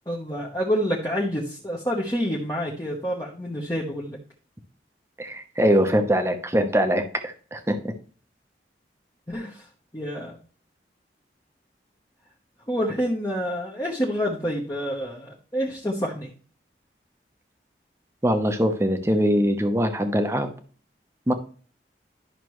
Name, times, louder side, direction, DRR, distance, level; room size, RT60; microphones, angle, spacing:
voice 1, 0.1-4.2 9.3-9.7 9.9-10.4 12.7-16.3, equal, 20° left, -3 dB, 1.0 m, -28 dB
voice 2, 5.2-7.9 18.2-20.5 21.3-21.4, equal, 15° right, 7 dB, 0.8 m, -22 dB
11.0 x 5.9 x 3.1 m, 0.43 s
head